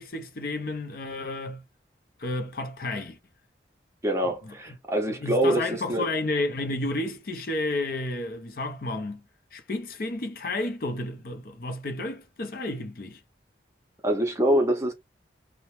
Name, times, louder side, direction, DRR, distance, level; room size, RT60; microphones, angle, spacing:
voice 1, 0.0-1.6 2.2-3.2 4.2-4.8 5.1-9.2 9.5-13.2, left 2 dB, 55° left, 0.5 m, -31 dB
voice 2, 4.0-6.1 14.0-14.9, right 1 dB, 15° right, 0.6 m, -25 dB
2.8 x 2.1 x 3.0 m
head